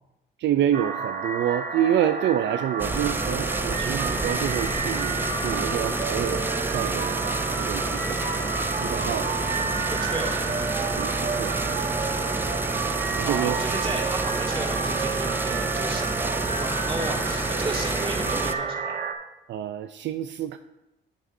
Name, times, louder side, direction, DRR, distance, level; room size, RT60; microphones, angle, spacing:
voice 1, 0.4-6.5 6.7-9.3 11.0-11.8 13.1-13.5 19.5-20.6, right 11 dB, 65° right, 9 dB, 0.4 m, -28 dB
sound 1, 0.7-19.1, right 5 dB, 45° right, 1.2 m, -30 dB
sound 2, 2.8-18.5, right 2 dB, 10° right, 0.5 m, -29 dB
Livestock farm animals working animals, 5.0-10.9, left 3 dB, 80° left, 3.0 m, -50 dB
voice 2, 9.9-11.0 13.2-19.0, right 2 dB, 25° right, -1 dB, 2.4 m, -34 dB
15.0 x 5.1 x 2.7 m, 0.92 s
cardioid pair, 90°, 20 cm